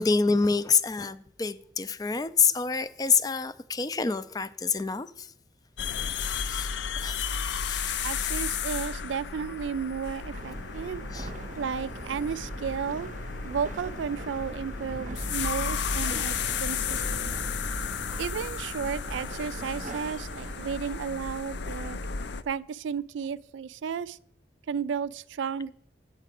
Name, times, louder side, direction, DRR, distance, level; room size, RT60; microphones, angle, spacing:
voice 1, 0.0-5.3 6.4-6.7 7.0-7.2 7.7-7.9 11.1-11.3, left 5 dB, 20° left, 0.3 m, -27 dB
sound 1, 5.8-22.4, left 6 dB, 75° left, 0.5 m, -33 dB
voice 2, 8.0-11.0 11.6-13.1 13.4-17.4 18.2-22.0 22.5-24.2 24.7-25.7, right 7 dB, 90° right, 0.3 m, -33 dB
sound 2, 10.3-20.7, right 2 dB, 40° right, 0.6 m, -41 dB
9.1 x 4.8 x 7.5 m
head